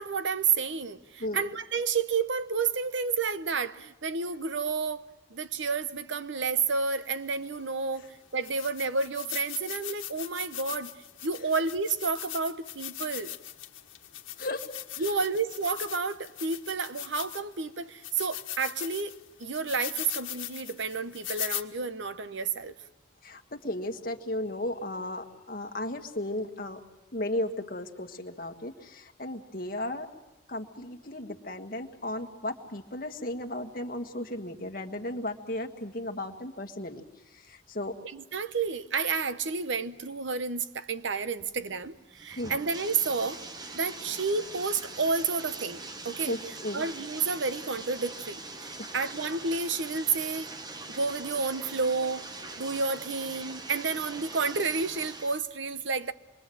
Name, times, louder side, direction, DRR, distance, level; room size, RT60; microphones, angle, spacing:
voice 1, 0.0-13.3 15.0-22.7 38.1-43.4 43.7-46.3 46.7-50.5 50.9-52.3 52.6-56.1, right 4 dB, 70° right, 0.9 m, -30 dB
sound 1, 7.3-7.4 8.0-8.1 8.4-17.6 18.0-21.6, left 14 dB, 80° left, 1.5 m, -40 dB
voice 2, 14.9-15.2 23.2-26.8 27.1-30.1 30.5-37.0 37.3-37.9 42.4-42.6 46.3-46.8 48.8-48.9, left 1 dB, 45° left, 1.6 m, -35 dB
Bathtub (filling or washing), 41.4-55.4, right 2 dB, 20° right, 0.9 m, -42 dB
26.5 x 23.0 x 7.7 m
head